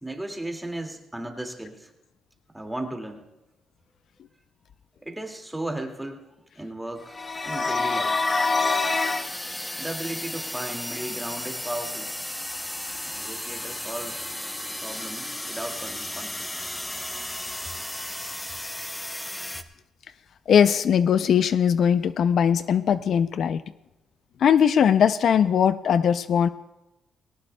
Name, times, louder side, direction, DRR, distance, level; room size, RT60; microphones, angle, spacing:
voice 1, 0.0-1.9 2.5-3.3 5.0-6.3 6.6-7.2 7.4-8.3 9.8-12.2 13.0-14.3 14.8-16.5, right 1 dB, 10° right, 3 dB, 2.1 m, -35 dB
sound 1, 7.1-9.3, left 3 dB, 30° left, 1.3 m, -25 dB
sound 2, 7.2-19.6, left 1 dB, 10° left, 0.7 m, -35 dB
voice 2, 20.5-23.6 24.4-26.5, left 8 dB, 60° left, 13 dB, 0.4 m, -20 dB
19.0 x 17.5 x 2.2 m, 0.97 s
cardioid pair, 90°, 0 cm